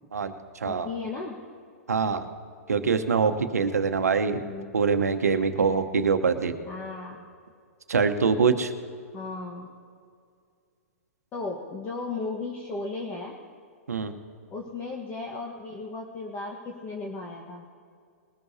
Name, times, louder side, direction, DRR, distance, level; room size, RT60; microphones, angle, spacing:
voice 1, 0.6-1.4 4.4-4.7 6.6-7.2 9.1-9.7 11.3-13.4 14.5-17.6, left 3 dB, 25° left, 0 dB, 1.3 m, -35 dB
voice 2, 1.9-2.3 2.7-4.4 4.7-6.5 7.9-8.7 13.9-14.1, right 5 dB, 85° right, 8 dB, 1.0 m, -24 dB
20.5 x 14.0 x 2.8 m, 2.2 s
hypercardioid pair, 125°, 8 cm